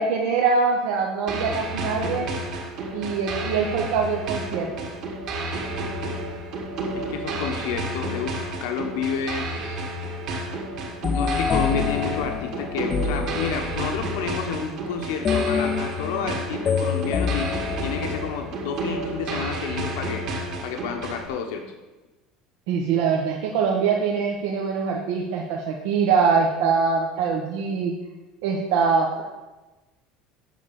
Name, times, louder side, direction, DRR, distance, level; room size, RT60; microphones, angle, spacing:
voice 1, 0.0-2.3 2.9-4.9 22.7-27.9 28.4-29.2, right 5 dB, 80° right, -1 dB, 1.2 m, -23 dB
sound 1, 1.3-21.3, right 1 dB, 45° right, 1.8 m, -31 dB
voice 2, 6.9-9.8 11.1-17.5 17.8-20.3 20.6-21.7, left 6 dB, 85° left, 4 dB, 1.3 m, -30 dB
sound 2, 11.0-14.0 15.2-18.5, left 6 dB, 20° left, 0.4 m, -27 dB
8.1 x 6.7 x 7.0 m, 1.1 s
cardioid pair, 175°, 0 cm